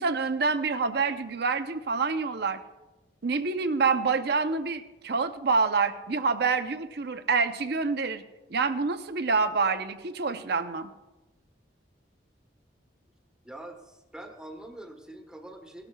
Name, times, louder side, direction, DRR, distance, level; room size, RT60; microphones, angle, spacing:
voice 1, 0.0-2.6 3.2-8.2 8.5-10.9, right 4 dB, 60° right, 9 dB, 0.7 m, -27 dB
voice 2, 13.4-15.9, right 1 dB, 5° right, 4 dB, 1.2 m, -44 dB
18.0 x 13.0 x 2.3 m, 1.1 s
head